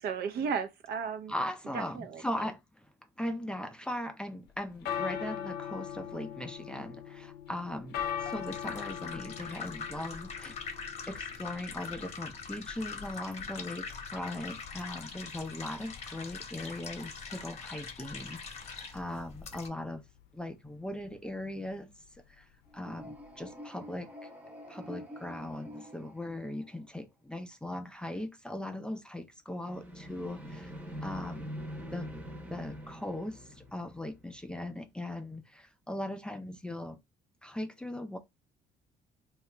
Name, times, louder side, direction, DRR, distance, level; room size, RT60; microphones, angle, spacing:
voice 1, 0.0-1.3 1.7-2.5, right 6 dB, 70° right, 0.7 m, -35 dB
voice 2, 1.3-2.6 3.2-10.8 11.1-20.0 20.3-21.9 22.4-22.5 22.7-24.1 24.7-30.7 31.0-31.5 31.9-32.1 32.5-37.0 37.4-38.2, left 1 dB, 5° left, 0.4 m, -39 dB
sound 1, 4.5-23.5, left 9 dB, 75° left, 0.5 m, -43 dB
sound 2, 8.0-19.7, left 5 dB, 40° left, 0.9 m, -43 dB
sound 3, 22.7-27.0 29.6-34.6, equal, 10° right, 0.8 m, -45 dB
2.8 x 2.4 x 3.2 m
cardioid pair, 110°, 17 cm